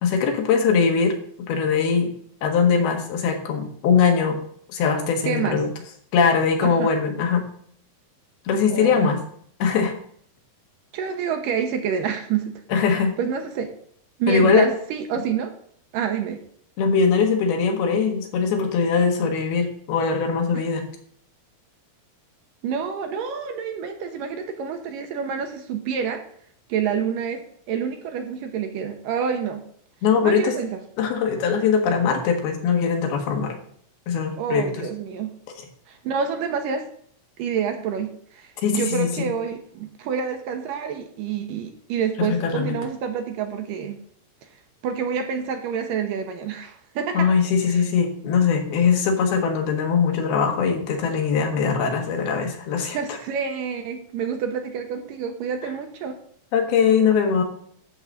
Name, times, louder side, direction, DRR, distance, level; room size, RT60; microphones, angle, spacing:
voice 1, 0.0-1.2 1.5-2.1 2.4-4.4 4.7-5.7 6.1-7.4 8.5-9.2 9.6-9.9 12.7-13.1 14.3-14.7 16.8-20.9 30.0-30.6 31.0-33.5 34.1-34.9 35.6-35.7 38.6-39.3 42.2-42.8 47.2-53.0 56.5-57.4, left 6 dB, 80° left, 3 dB, 3.4 m, -21 dB
voice 2, 5.2-5.6 6.6-6.9 8.7-9.1 10.9-12.5 13.2-13.7 14.2-15.5 15.9-16.4 22.6-26.2 26.7-29.6 30.2-30.8 34.4-35.3 35.9-36.9 37.4-44.0 44.8-47.3 47.7-47.8 52.9-56.2, right 7 dB, 70° right, 5 dB, 2.3 m, -28 dB
12.0 x 4.0 x 7.2 m, 0.62 s
omnidirectional pair, 4.4 m